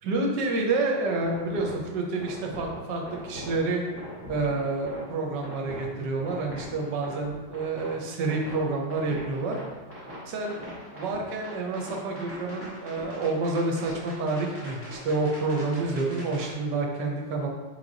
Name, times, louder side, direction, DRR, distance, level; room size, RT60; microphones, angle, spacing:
voice 1, 0.0-3.8 4.3-9.6 10.3-10.6 10.9-17.5, right 3 dB, 80° right, 1 dB, 1.4 m, -28 dB
sound 1, 1.2-16.5, equal, 10° right, 0.9 m, -42 dB
3.8 x 3.3 x 3.8 m, 1.3 s
omnidirectional pair, 1.8 m